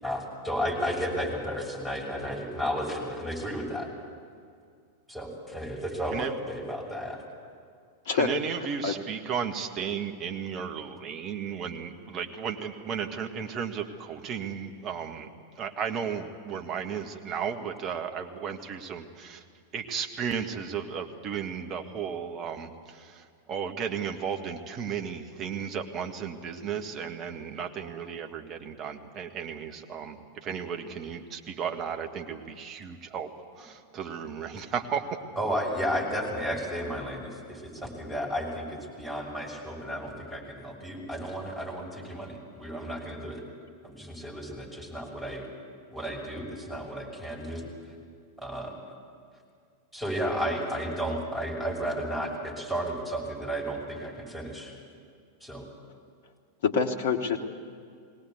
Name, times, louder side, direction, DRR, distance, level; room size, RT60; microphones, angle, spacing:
voice 1, 0.0-3.9 5.1-7.2 35.4-43.4 43.8-45.4 45.9-47.7 48.4-48.8 49.9-54.7 55.4-55.6, equal, 5° right, -3 dB, 6.2 m, -33 dB
voice 2, 8.1-15.3 15.6-19.4 19.7-33.3 33.6-35.2, right 7 dB, 35° right, 5 dB, 1.7 m, -34 dB
voice 3, 56.6-57.4, left 5 dB, 55° left, 4 dB, 1.4 m, -25 dB
20.5 x 18.0 x 8.3 m, 2.2 s
figure-of-eight pair, 90°, 0 cm